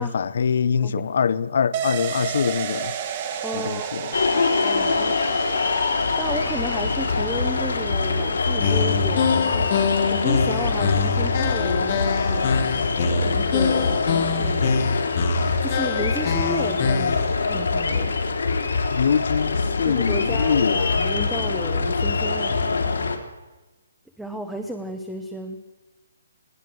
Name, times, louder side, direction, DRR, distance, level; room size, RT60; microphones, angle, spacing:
voice 1, 0.0-2.9 3.5-4.0 18.9-21.0, left 6 dB, 50° left, 0.7 m, -23 dB
sound 1, 1.7-11.1 11.4-11.5, right 8 dB, 25° right, 1.5 m, -34 dB
voice 2, 3.4-3.9 4.6-5.5 6.2-14.7 15.6-18.1 19.8-22.9 24.2-25.6, right 1 dB, ahead, 0.7 m, -33 dB
sound 2, 4.1-23.2, left 4 dB, 80° left, 3.4 m, -23 dB
sound 3, 8.6-17.3, left 5 dB, 30° left, 1.6 m, -25 dB
21.0 x 16.0 x 7.7 m
hypercardioid pair, 175°, 0 cm